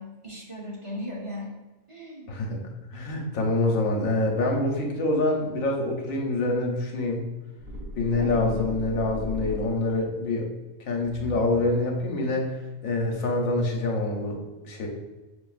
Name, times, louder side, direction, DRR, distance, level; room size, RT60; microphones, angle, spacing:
voice 1, 0.0-1.6 1.9-2.3 8.1-8.7, left 1 dB, 30° right, -5 dB, 0.7 m, -37 dB
voice 2, 2.3-2.6 2.9-7.2 7.9-10.5 10.9-12.6 12.8-14.4 14.6-14.9, left 2 dB, 80° left, 1 dB, 1.2 m, -26 dB
sound 1, 7.6-10.1 11.0-12.0, equal, 85° right, 1.2 m, -37 dB
6.4 x 2.5 x 2.4 m, 1.2 s
omnidirectional pair, 1.4 m